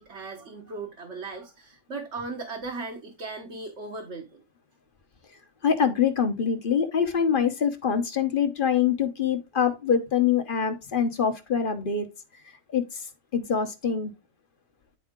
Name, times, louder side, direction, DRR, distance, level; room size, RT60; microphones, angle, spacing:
voice 1, 0.0-4.4, right 3 dB, 55° right, 1.6 m, -37 dB
voice 2, 5.6-12.1 12.7-13.0 13.3-14.1, left 7 dB, 45° left, 1.1 m, -24 dB
10.0 x 4.2 x 3.7 m
omnidirectional pair, 1.4 m